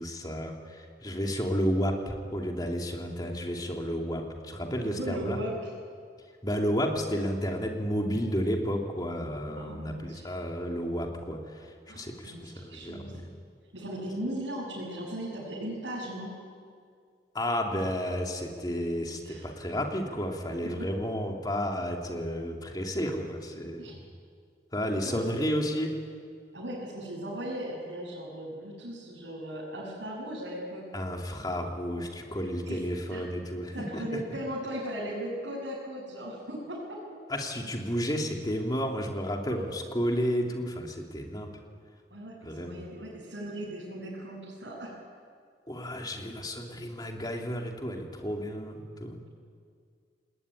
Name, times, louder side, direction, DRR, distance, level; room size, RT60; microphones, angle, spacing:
voice 1, 0.0-5.4 6.4-13.3 17.3-24.1 24.7-26.0 30.9-34.0 37.3-41.5 42.4-42.9 45.7-49.2, equal, 20° left, 1 dB, 3.0 m, -32 dB
voice 2, 5.0-5.7 9.6-10.3 11.9-13.2 13.7-16.4 19.2-19.4 20.8-20.9 23.8-23.9 25.0-25.2 26.5-31.2 32.7-32.8 33.1-33.3 33.7-37.0 39.4-39.6 42.1-44.9, equal, 80° right, -7 dB, 7.4 m, -37 dB
28.0 x 20.0 x 9.9 m, 2.1 s
head